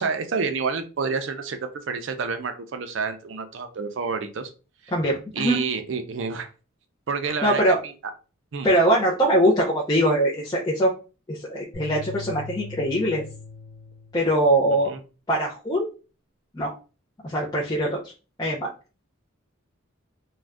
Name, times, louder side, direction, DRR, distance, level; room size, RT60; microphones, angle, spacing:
voice 1, 0.0-4.5 5.3-6.5 7.1-7.9 8.5-8.7 14.9-15.0, right 5 dB, 60° right, 8 dB, 0.5 m, -29 dB
voice 2, 4.9-5.6 7.4-7.8 8.6-10.9 11.3-13.2 14.1-14.9 15.3-15.9 16.5-16.7 17.2-18.0 18.4-18.7, right 1 dB, 20° left, -5 dB, 0.5 m, -22 dB
sound 1, 11.7-14.2, left 4 dB, 80° left, 0.8 m, -40 dB
2.5 x 2.2 x 3.3 m, 0.34 s
head